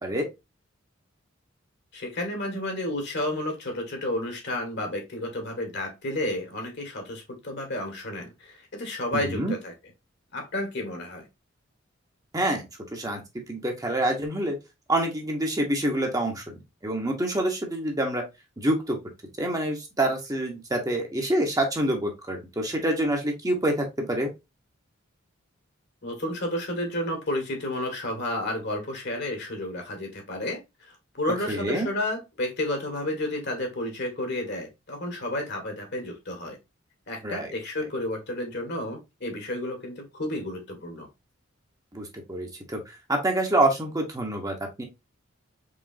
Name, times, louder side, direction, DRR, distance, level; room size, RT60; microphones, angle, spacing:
voice 1, 1.9-9.7 10.3-11.3 26.0-36.6 37.1-41.1, left 1 dB, 55° left, 1.8 m, -31 dB
voice 2, 9.1-9.5 12.3-12.6 12.9-13.2 13.5-14.6 14.9-16.4 16.8-18.2 18.6-19.0 19.4-24.3 31.5-31.9 37.2-37.5 41.9-44.8, right 1 dB, 20° right, 1.0 m, -26 dB
5.0 x 3.3 x 2.6 m
head